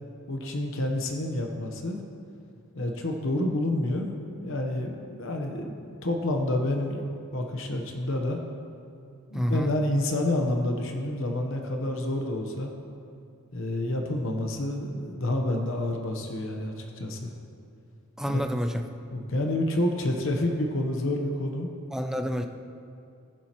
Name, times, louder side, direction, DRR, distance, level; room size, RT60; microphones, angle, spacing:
voice 1, 0.3-2.0 2.8-8.4 9.3-12.7 13.5-17.3 18.3-18.4 19.1-21.7, left 1 dB, 60° left, 2 dB, 0.9 m, -29 dB
voice 2, 9.3-9.7 18.2-18.9 21.9-22.5, equal, ahead, 5 dB, 0.4 m, -28 dB
19.0 x 7.5 x 3.0 m, 2.5 s
head